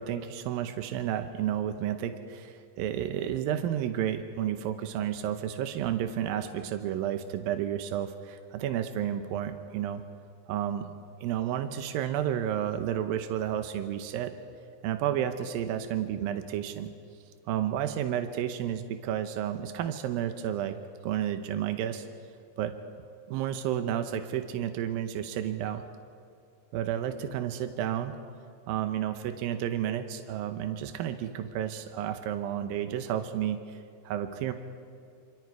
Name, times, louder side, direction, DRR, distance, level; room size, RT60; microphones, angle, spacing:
voice 1, 0.0-10.0 10.5-10.9 11.2-14.3 14.8-16.9 17.5-20.8 21.0-22.1 22.6-22.8 23.3-25.9 26.7-28.2 28.7-33.8 34.0-34.5, right 10 dB, 85° right, 8 dB, 2.7 m, -31 dB
27.5 x 26.5 x 4.7 m, 2.3 s
omnidirectional pair, 4.1 m